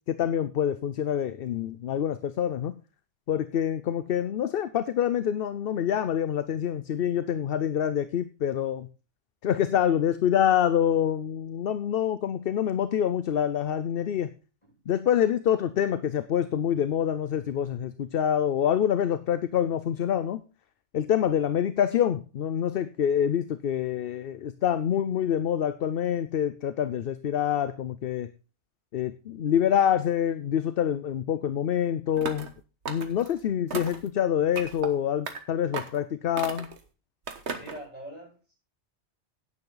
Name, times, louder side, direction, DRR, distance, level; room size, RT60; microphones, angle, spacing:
voice 1, 0.1-2.7 3.3-8.9 9.4-14.3 14.9-20.4 20.9-28.3 28.9-32.5 32.9-36.7, left 9 dB, 60° left, 13 dB, 0.8 m, -26 dB
voice 2, 14.6-15.0 37.6-38.5, right 1 dB, 25° left, -3 dB, 7.4 m, -44 dB
sound 1, 32.2-32.5 32.9-33.3 33.7-34.1 34.5-34.9 35.3-35.4 35.7-36.0 36.4-36.8 37.3-37.8, right 4 dB, 70° right, 1.6 m, -35 dB
11.0 x 9.5 x 3.9 m, 0.33 s
omnidirectional pair, 1.2 m